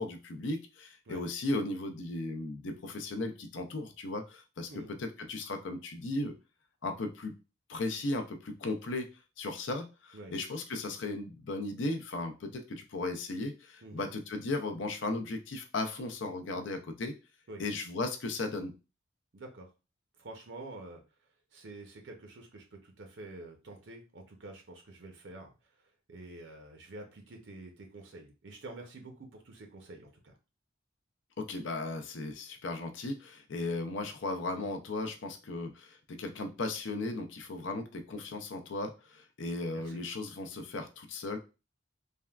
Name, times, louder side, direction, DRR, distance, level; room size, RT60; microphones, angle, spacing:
voice 1, 0.0-6.3 6.8-7.3 7.7-9.1 9.4-17.2 17.6-18.7 31.4-41.4, left 2 dB, 70° left, 6 dB, 0.5 m, -36 dB
voice 2, 19.3-19.7 20.2-21.0 21.5-25.5 26.1-30.3 39.7-40.0, right 2 dB, 65° right, 3 dB, 0.6 m, -48 dB
3.4 x 2.2 x 2.3 m, 0.30 s
head